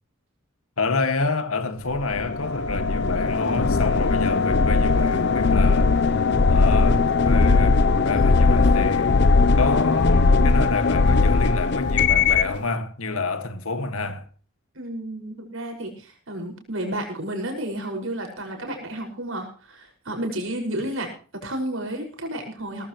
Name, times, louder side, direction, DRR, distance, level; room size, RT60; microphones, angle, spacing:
voice 1, 0.8-6.0 6.5-9.1 9.6-14.3, left 3 dB, 75° left, 1.8 m, -28 dB
sound 1, 1.9-12.6, left 4 dB, 55° left, 0.6 m, -19 dB
voice 2, 14.7-21.1 21.4-22.9, right 1 dB, 65° right, 5.7 m, -31 dB
19.0 x 14.5 x 3.1 m
head